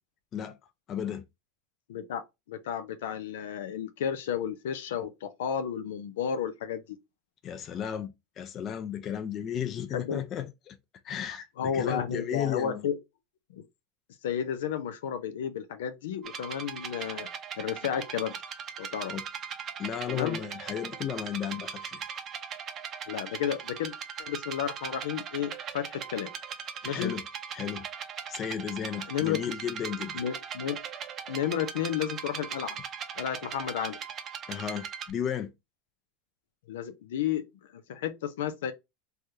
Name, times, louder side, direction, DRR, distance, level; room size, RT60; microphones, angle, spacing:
voice 1, 0.9-1.2 7.4-10.8 11.0-12.9 19.1-19.2 19.8-22.0 26.8-27.2 27.5-27.9 28.3-30.2 34.5-35.5, left 9 dB, 35° left, 0.5 m, -34 dB
voice 2, 1.9-2.2 2.5-6.8 9.9-10.2 11.6-13.0 13.5-13.6 14.2-17.3 17.6-18.3 18.8-19.1 20.1-20.4 23.1-23.9 24.2-26.3 26.8-27.1 29.1-29.4 30.1-30.8 31.3-32.8 33.2-34.0 36.7-37.5 37.9-38.7, left 9 dB, 85° left, 0.6 m, -32 dB
sound 1, 16.2-35.1, right 7 dB, 35° right, 0.6 m, -39 dB
3.3 x 2.3 x 2.7 m
supercardioid pair, 130°, 0 cm